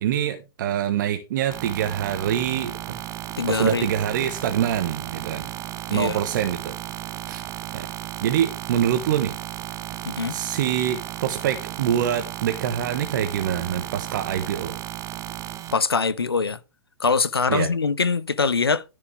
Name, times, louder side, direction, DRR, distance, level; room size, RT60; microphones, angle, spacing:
voice 1, 0.0-3.0 3.5-5.5 5.9-6.7 7.3-7.4 7.7-7.9 8.2-9.4 10.3-14.8 17.5-17.7, right 10 dB, 55° right, 1.3 m, -25 dB
sound 1, 1.5-15.7, right 12 dB, 25° right, 0.9 m, -34 dB
voice 2, 3.4-3.9 5.9-6.2 10.0-10.3 15.7-16.6 17.0-18.8, left 4 dB, 85° left, 0.8 m, -23 dB
14.0 x 5.2 x 3.3 m
figure-of-eight pair, 115°, 13 cm